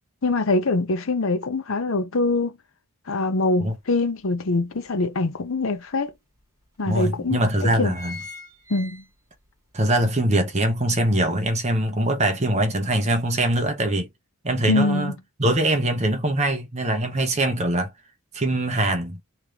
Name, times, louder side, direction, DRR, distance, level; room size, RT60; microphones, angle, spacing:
voice 1, 0.2-2.5 3.1-6.1 6.8-7.9 8.7-9.0 14.7-15.1, left 2 dB, 60° left, 0.7 m, -24 dB
sound 1, 3.7-3.8 4.2-5.4 6.1-6.2 6.4-6.5 7.2-7.4 7.6-9.5 9.9-10.0, left 3 dB, 15° right, 1.4 m, -41 dB
voice 2, 6.8-8.2 9.7-14.1 14.4-15.1 15.4-17.9 18.3-19.2, right 1 dB, 30° right, 0.8 m, -22 dB
3.2 x 2.9 x 3.6 m
head